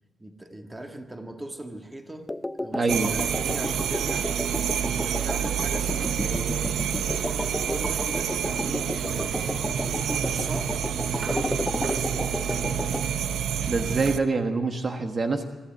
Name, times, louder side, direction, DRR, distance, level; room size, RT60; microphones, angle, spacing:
voice 1, 0.2-2.3 2.6-4.4 4.9-6.8 7.3-10.8 11.2-12.8, right 1 dB, 15° right, 4 dB, 1.8 m, -39 dB
sound 1, 2.3-13.1, left 1 dB, 10° left, 0.5 m, -33 dB
voice 2, 2.7-3.1 13.7-15.4, right 3 dB, 40° right, 5 dB, 1.4 m, -25 dB
sound 2, 2.9-14.2, right 8 dB, 85° right, 0.9 m, -28 dB
24.0 x 13.5 x 9.3 m, 1.3 s
cardioid pair, 110°, 0 cm